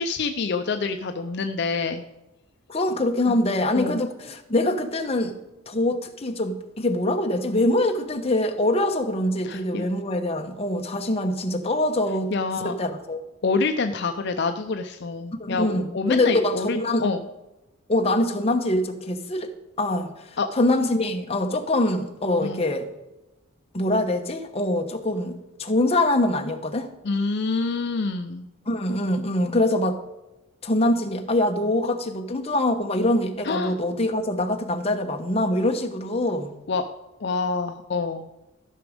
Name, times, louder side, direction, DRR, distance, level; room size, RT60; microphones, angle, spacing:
voice 1, 0.0-2.0 3.3-3.4 3.7-4.0 9.4-9.9 12.3-12.7 13.4-17.2 20.4-20.5 22.4-22.6 27.0-28.5 33.4-33.8 36.7-36.8 37.2-38.3, left 4 dB, 55° left, 6 dB, 0.5 m, -27 dB
voice 2, 2.7-5.4 5.7-12.3 12.6-13.2 15.4-17.0 17.9-19.5 19.8-22.9 23.7-26.9 28.7-30.0 30.6-36.5, left 1 dB, 30° left, 4 dB, 0.9 m, -24 dB
14.0 x 6.1 x 5.0 m, 0.99 s
head